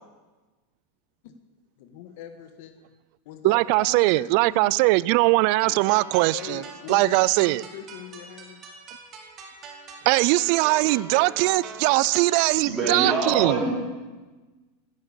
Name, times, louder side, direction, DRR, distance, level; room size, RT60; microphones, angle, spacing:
voice 1, 1.8-2.7 3.2-5.1 6.3-8.6, left 9 dB, 65° left, 7 dB, 1.6 m, -41 dB
voice 2, 3.4-6.6 6.9-7.6 10.1-13.6, right 21 dB, 55° right, 21 dB, 0.4 m, -21 dB
sound 1, 5.6-12.6, right 5 dB, 35° right, 3.0 m, -42 dB
voice 3, 12.3-13.7, right 4 dB, 20° right, -4 dB, 4.8 m, -26 dB
15.0 x 10.5 x 8.4 m, 1.2 s
supercardioid pair, 135°, 0 cm